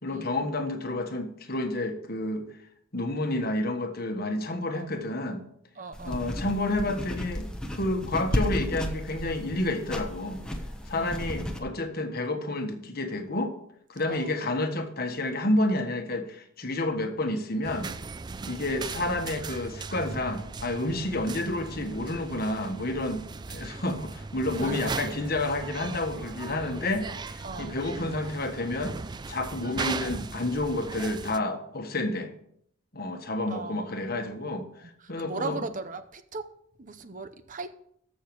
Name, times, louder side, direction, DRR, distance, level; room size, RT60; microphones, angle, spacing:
voice 1, 0.0-2.5 2.9-5.4 6.0-10.4 10.9-13.5 13.9-17.9 18.5-29.0 29.3-32.3 32.9-35.6, left 2 dB, 50° left, 6 dB, 1.3 m, -30 dB
voice 2, 5.8-6.3 10.9-11.4 14.1-14.4 24.5-24.9 27.4-27.8 33.5-34.2 34.8-34.9 35.2-36.5 36.8-37.7, right 4 dB, 40° right, 11 dB, 0.7 m, -38 dB
sound 1, 5.9-11.6, equal, 5° left, 1.0 m, -33 dB
sound 2, 17.6-31.4, right 4 dB, 20° right, 0.3 m, -38 dB
14.0 x 6.5 x 4.7 m, 0.67 s
head